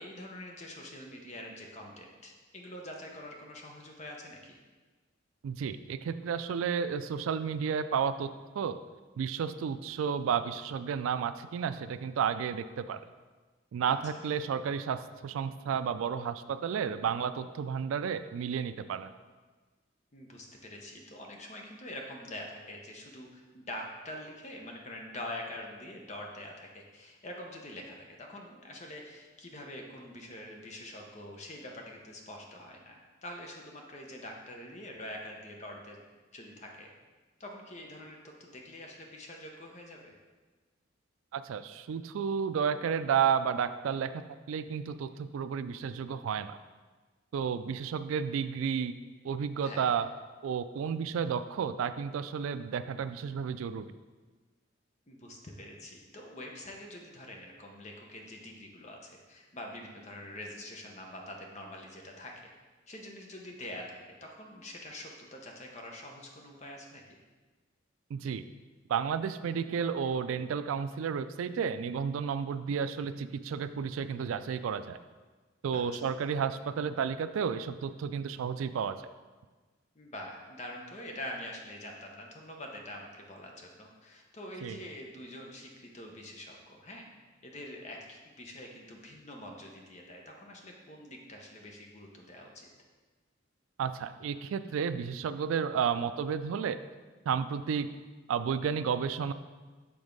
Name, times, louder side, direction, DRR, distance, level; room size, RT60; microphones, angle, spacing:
voice 1, 0.0-4.6 13.9-14.2 20.1-36.0 36.3-36.9 37.4-40.1 49.6-49.9 55.1-62.3 62.9-67.2 75.7-76.1 79.9-87.1 87.4-92.7, left 1 dB, 35° left, 1 dB, 0.8 m, -45 dB
voice 2, 5.4-8.3 8.6-8.8 9.2-13.0 13.7-19.1 41.3-44.2 44.5-46.6 47.3-48.9 49.2-50.1 50.4-53.9 68.1-68.4 68.9-75.0 75.6-79.0 84.6-84.8 93.8-96.8 97.3-97.9 98.3-99.3, right 7 dB, 85° right, 12 dB, 0.3 m, -32 dB
7.0 x 3.5 x 5.2 m, 1.3 s
head